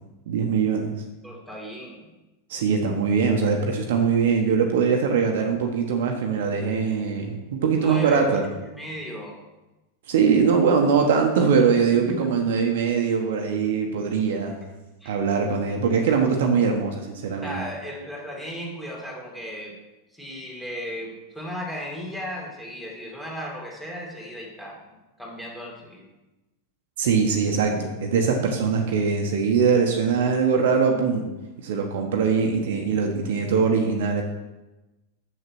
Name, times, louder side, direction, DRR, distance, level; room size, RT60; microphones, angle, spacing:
voice 1, 0.3-0.9 2.5-8.4 10.1-14.6 15.0-17.6 27.0-31.3 31.6-34.2, right 5 dB, 55° right, 2 dB, 1.1 m, -22 dB
voice 2, 1.2-2.1 7.7-8.4 8.7-9.4 12.1-12.3 15.0-15.1 17.4-19.7 20.1-24.8 25.2-26.1, equal, 5° left, -3 dB, 2.6 m, -35 dB
7.0 x 6.7 x 6.0 m, 1.1 s
figure-of-eight pair, 90°, 0 cm